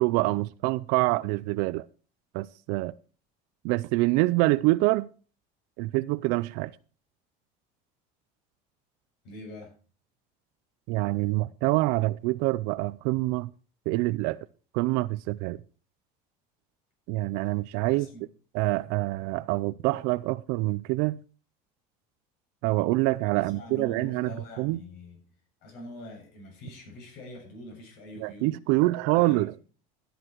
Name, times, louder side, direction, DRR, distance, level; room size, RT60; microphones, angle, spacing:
voice 1, 0.0-1.9 2.3-2.9 3.6-5.1 5.8-6.7 10.9-13.5 13.9-14.4 14.7-15.6 17.1-18.1 18.5-21.2 22.6-24.3 24.6-24.8 28.2-29.5, right 20 dB, 65° right, 0.5 m, -26 dB
voice 2, 9.2-9.7 17.9-18.3 23.3-25.2 25.6-28.6 29.1-29.5, left 1 dB, 60° left, 7.4 m, -44 dB
13.0 x 10.0 x 4.6 m
cardioid pair, 175°, 18 cm